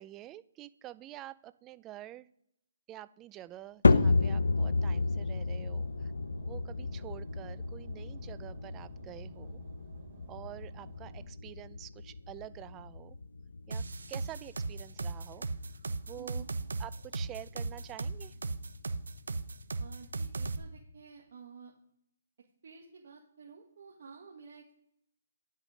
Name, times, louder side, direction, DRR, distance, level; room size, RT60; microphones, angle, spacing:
voice 1, 0.0-2.3 2.9-6.1 6.4-9.6 10.3-13.2 13.7-15.5 16.1-16.5 16.8-18.3, right 14 dB, 15° right, 16 dB, 0.3 m, -48 dB
sound 1, 3.8-20.3, left 3 dB, 85° left, 0.5 m, -33 dB
Car, 5.7-11.2, right 1 dB, 35° right, 4.5 m, -51 dB
sound 2, 13.7-20.6, right 3 dB, 85° right, 0.9 m, -36 dB
voice 2, 16.2-16.5 19.8-21.8 22.6-24.8, right 5 dB, 55° right, -1 dB, 1.6 m, -52 dB
10.0 x 8.2 x 5.0 m, 0.75 s
hypercardioid pair, 160°, 0 cm